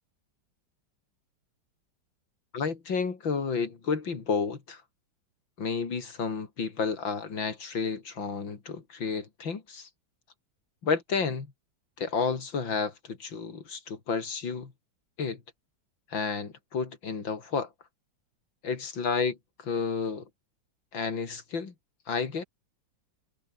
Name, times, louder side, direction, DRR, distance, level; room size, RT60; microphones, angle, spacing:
voice 1, 2.5-4.8 5.6-9.9 10.8-11.5 12.0-14.7 15.2-15.4 16.1-17.7 18.6-20.3 20.9-21.7 22.1-22.4, left 5 dB, 75° left, 3.7 m, -31 dB
omnidirectional pair, 2.1 m